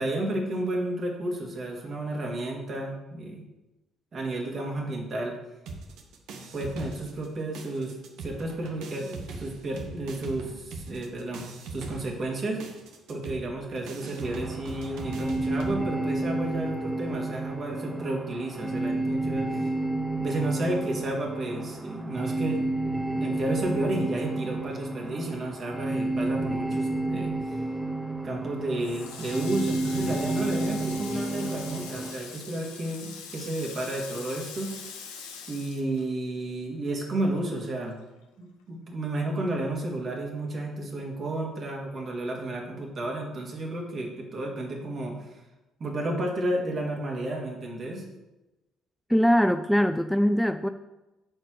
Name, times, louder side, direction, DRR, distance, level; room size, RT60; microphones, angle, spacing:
voice 1, 0.0-3.4 4.1-5.4 6.5-12.6 13.1-19.7 20.2-22.7 23.2-27.6 28.2-34.9 35.5-38.0 38.4-45.4 45.8-48.1, right 1 dB, 45° right, 0 dB, 2.4 m, -32 dB
sound 1, 5.7-7.3 7.5-15.8, right 3 dB, 65° right, 1.1 m, -41 dB
sound 2, 14.2-32.1, right 2 dB, 15° right, 1.1 m, -31 dB
Water tap faucet, 28.8-36.6 36.9-38.3, left 6 dB, 75° left, 1.0 m, -43 dB
voice 2, 49.1-50.7, equal, ahead, 9 dB, 0.4 m, -22 dB
8.8 x 4.3 x 6.6 m, 1.0 s
figure-of-eight pair, 50°, 0 cm